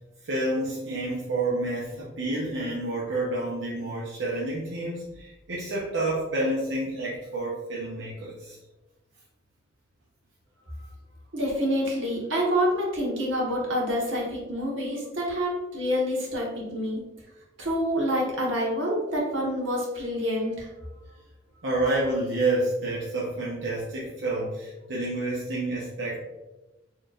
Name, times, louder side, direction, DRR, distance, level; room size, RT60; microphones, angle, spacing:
voice 1, 0.2-8.6 21.6-26.2, right 2 dB, 70° right, -5 dB, 0.7 m, -29 dB
voice 2, 11.3-17.0 17.6-20.7, equal, 90° right, -3 dB, 1.2 m, -27 dB
4.4 x 3.1 x 2.4 m, 1.1 s
head